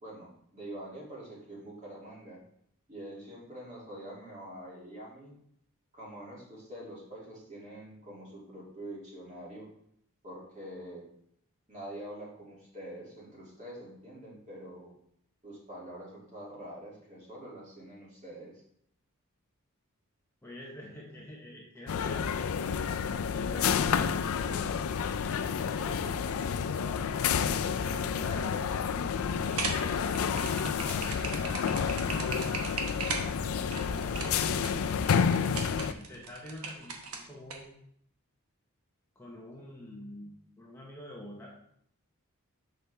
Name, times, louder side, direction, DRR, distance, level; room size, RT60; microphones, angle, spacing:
voice 1, 0.0-2.4 2.9-5.3 5.9-9.7 10.2-11.1 11.7-14.9 15.4-18.6 34.3-34.5, right 1 dB, 35° right, -5 dB, 2.4 m, -45 dB
voice 2, 20.4-22.3 23.4-24.7 25.5-27.0 27.5-28.6 29.8-31.6 33.6-37.7 39.1-41.5, left 1 dB, 10° left, -4 dB, 0.9 m, -46 dB
sound 1, 21.9-35.9, left 7 dB, 75° left, 0.4 m, -30 dB
sound 2, 29.4-37.6, right 4 dB, 85° right, 1.0 m, -38 dB
6.5 x 5.4 x 3.4 m, 0.69 s
head